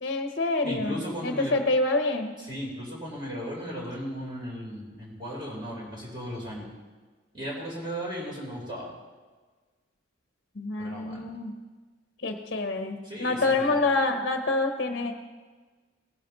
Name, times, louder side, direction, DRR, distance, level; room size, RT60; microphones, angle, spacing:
voice 1, 0.0-2.3 10.6-11.5 12.2-15.1, left 2 dB, 50° left, 5 dB, 0.9 m, -27 dB
voice 2, 0.6-1.6 2.4-6.7 7.3-8.9 10.8-11.3 13.0-13.8, equal, 25° right, -5 dB, 3.9 m, -36 dB
18.5 x 10.5 x 3.1 m, 1.4 s
head